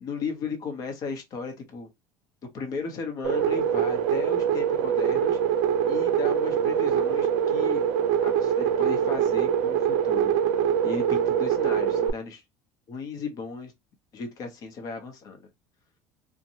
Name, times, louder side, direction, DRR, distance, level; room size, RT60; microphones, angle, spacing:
voice 1, 0.0-1.9 2.5-5.4 5.9-7.9 8.2-10.3 10.8-12.4 12.9-13.7 14.1-15.5, left 4 dB, 40° left, 0.8 m, -35 dB
sound 1, 3.2-12.1, right 8 dB, 75° right, 0.4 m, -24 dB
2.8 x 2.2 x 2.6 m
cardioid pair, 150°, 9 cm